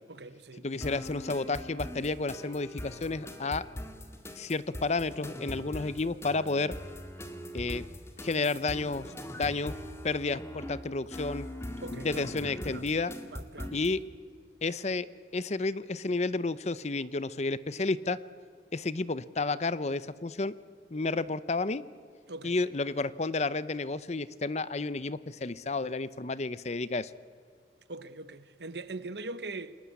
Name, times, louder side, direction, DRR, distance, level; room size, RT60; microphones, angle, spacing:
voice 1, 0.1-0.7 11.8-12.8 13.3-13.8 22.3-22.6 27.9-29.8, right 2 dB, 70° right, 1.1 m, -42 dB
voice 2, 0.6-3.6 4.4-6.7 7.5-7.8 8.2-9.7 10.0-11.5 11.9-13.1 13.7-14.0 14.6-15.1 15.3-18.2 18.7-20.5 20.9-21.8 22.4-27.1, left 3 dB, 40° left, 0.7 m, -31 dB
sound 1, 0.8-13.9, left 1 dB, 15° left, 2.1 m, -41 dB
29.5 x 20.5 x 8.3 m
head